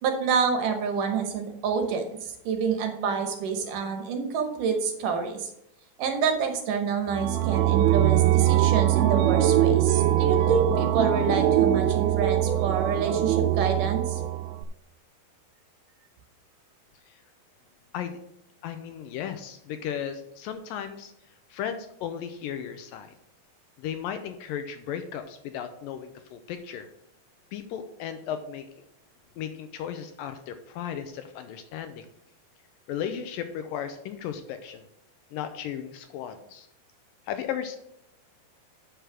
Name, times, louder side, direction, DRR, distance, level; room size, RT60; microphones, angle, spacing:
voice 1, 0.0-5.5 6.0-14.2, right 5 dB, 70° right, 5 dB, 2.5 m, -28 dB
sound 1, 7.1-14.6, right 12 dB, 90° right, 1.9 m, -22 dB
voice 2, 18.6-21.1 21.5-23.1 23.8-26.9 27.5-28.7 29.4-32.1 32.9-34.8 35.3-36.7 37.3-37.8, left 9 dB, 80° left, 9 dB, 2.2 m, -35 dB
8.1 x 6.3 x 6.1 m, 0.81 s
omnidirectional pair, 4.3 m